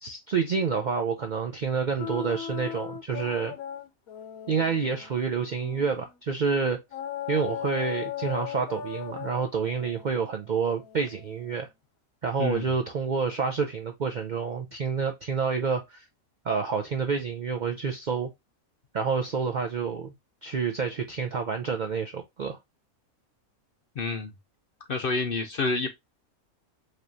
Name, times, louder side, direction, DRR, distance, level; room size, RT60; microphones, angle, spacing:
voice 1, 0.0-3.5 4.5-6.8 7.3-11.7 12.2-16.1 16.4-18.3 18.9-20.1 20.4-22.6, right 5 dB, 60° right, 0.5 m, -28 dB
sound 1, 2.0-6.1 6.9-11.7, left 10 dB, 85° left, 1.2 m, -38 dB
voice 2, 12.4-12.7 24.0-24.3 24.9-25.9, left 3 dB, 55° left, 0.6 m, -28 dB
5.0 x 3.0 x 2.6 m
omnidirectional pair, 1.5 m